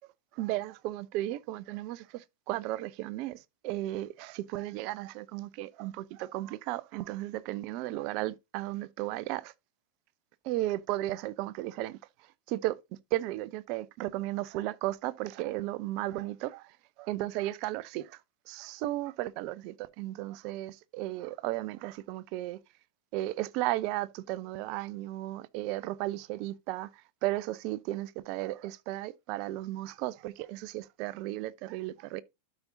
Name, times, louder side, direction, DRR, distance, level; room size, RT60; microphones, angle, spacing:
voice 1, 0.3-9.5 10.4-12.0 12.5-12.8 13.1-18.2 18.5-22.6 23.1-32.2, right 16 dB, 45° right, 0.5 m, -35 dB
12.0 x 5.1 x 2.6 m
figure-of-eight pair, 90°, 0 cm